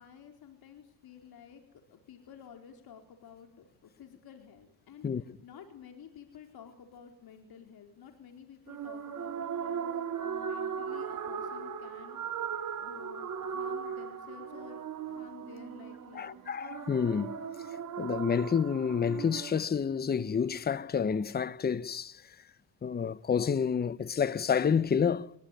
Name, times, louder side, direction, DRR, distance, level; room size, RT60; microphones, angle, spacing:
voice 1, 0.0-1.6 1.9-12.5 12.8-14.8 15.1-16.5, left 8 dB, 50° left, 4.4 m, -52 dB
voice 2, 5.0-5.4 16.1-17.4 18.0-22.4 22.8-25.3, left 6 dB, 20° left, 0.9 m, -29 dB
sound 1, 8.7-19.6, right 7 dB, 40° right, 4.8 m, -38 dB
23.5 x 22.0 x 9.2 m
supercardioid pair, 100°, 48 cm